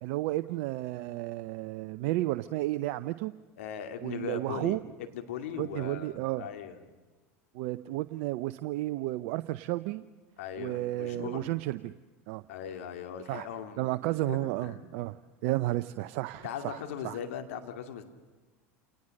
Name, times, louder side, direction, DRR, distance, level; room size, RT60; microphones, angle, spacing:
voice 1, 0.0-3.3 4.0-4.8 5.6-6.5 7.5-10.1 10.6-11.9 12.3-12.4 13.3-13.5 13.8-15.2 15.4-17.2, right 17 dB, 65° right, 12 dB, 0.6 m, -32 dB
voice 2, 3.6-6.8 10.4-11.6 12.5-13.8 14.1-14.8 16.4-18.0, left 8 dB, 75° left, 6 dB, 2.4 m, -39 dB
28.5 x 19.0 x 6.5 m, 1.3 s
hypercardioid pair, 90°, 7 cm